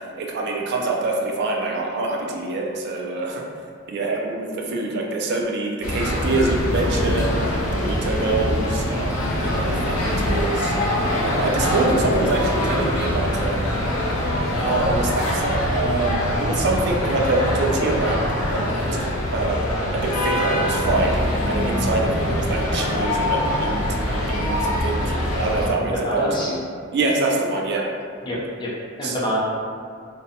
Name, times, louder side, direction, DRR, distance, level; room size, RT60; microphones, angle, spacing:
voice 1, 0.2-3.4 3.9-7.3 7.7-10.8 11.2-13.8 14.6-18.2 18.5-19.6 19.9-21.2 21.5-23.8 24.1-25.1 25.4-26.6 26.9-27.9 29.0-29.2, right 2 dB, 55° right, -1 dB, 0.3 m, -25 dB
sound 1, 5.8-25.7, left 1 dB, 85° left, 0.5 m, -23 dB
voice 2, 25.8-26.5 28.2-28.7 29.0-29.4, equal, 20° left, -6 dB, 0.4 m, -26 dB
2.6 x 2.1 x 2.7 m, 2.2 s
head